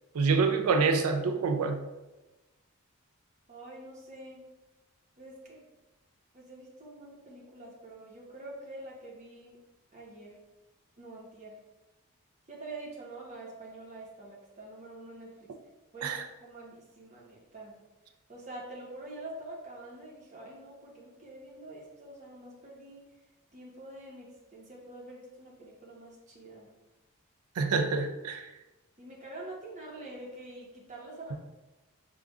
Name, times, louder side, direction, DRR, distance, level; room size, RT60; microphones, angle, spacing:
voice 1, 0.1-1.8 16.0-16.2 27.6-28.5, right 4 dB, 85° right, 6 dB, 0.4 m, -26 dB
voice 2, 3.5-4.4 5.2-5.7 6.3-9.6 9.9-10.4 11.0-11.6 12.5-15.5 15.9-17.7 18.3-23.0 23.5-26.7 29.0-31.3, right 2 dB, 35° right, -3 dB, 1.0 m, -46 dB
6.5 x 2.4 x 2.4 m, 1.1 s
head